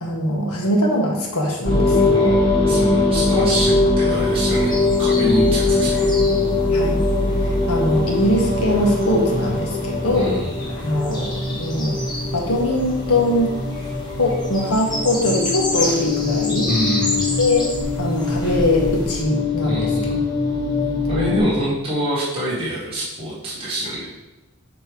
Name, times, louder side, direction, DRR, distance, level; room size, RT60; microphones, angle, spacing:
voice 1, 0.0-2.0 6.7-7.0 7.4-10.3 10.8-11.9 12.3-13.5 14.2-16.7 17.4-17.6 18.0-19.9, left 1 dB, 80° left, -1 dB, 1.5 m, -21 dB
sound 1, 1.6-21.4, left 2 dB, 45° left, 1.7 m, -21 dB
voice 2, 2.1-6.1 10.1-10.6 16.7-17.3 19.6-20.3 21.1-24.1, equal, 25° right, -9 dB, 1.8 m, -25 dB
sound 2, 4.1-19.2, left 1 dB, 20° left, 1.4 m, -31 dB
7.1 x 3.3 x 5.3 m, 1.0 s
head